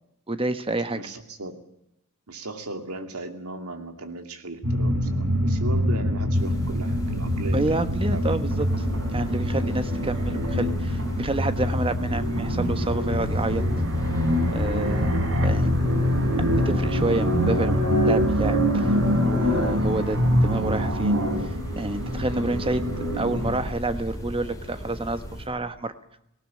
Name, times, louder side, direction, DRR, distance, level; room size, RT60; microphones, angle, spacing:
voice 1, 0.3-1.0 7.5-8.7 9.1-13.7 14.5-15.1 15.4-15.7 16.6-22.8 23.1-25.9, right 2 dB, 25° right, 10 dB, 1.2 m, -29 dB
voice 2, 0.9-1.6 2.3-8.5, right 2 dB, 80° right, 6 dB, 2.6 m, -37 dB
sound 1, 4.6-23.7, equal, 65° right, 4.8 m, -24 dB
sound 2, 6.3-25.5, equal, 15° left, 4.1 m, -37 dB
18.5 x 18.5 x 8.5 m, 0.81 s
head